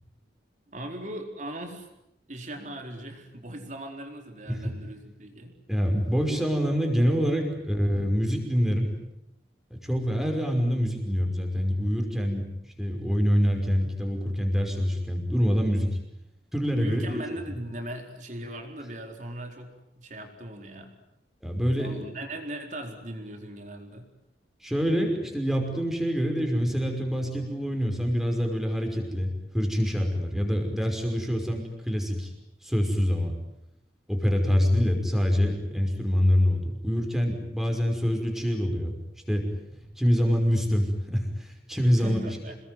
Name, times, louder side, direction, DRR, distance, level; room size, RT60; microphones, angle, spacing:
voice 1, 0.7-1.9 2.3-5.6 16.7-19.7 20.0-20.9 21.8-24.1 42.0-42.6, right 1 dB, 45° right, 3 dB, 4.4 m, -38 dB
voice 2, 5.7-8.9 9.8-12.5 12.8-16.0 16.5-17.2 21.4-22.0 24.6-32.3 32.6-33.3 34.1-38.9 39.3-39.5 40.0-42.2, equal, ahead, 3 dB, 5.6 m, -25 dB
28.5 x 21.0 x 9.4 m, 0.84 s
head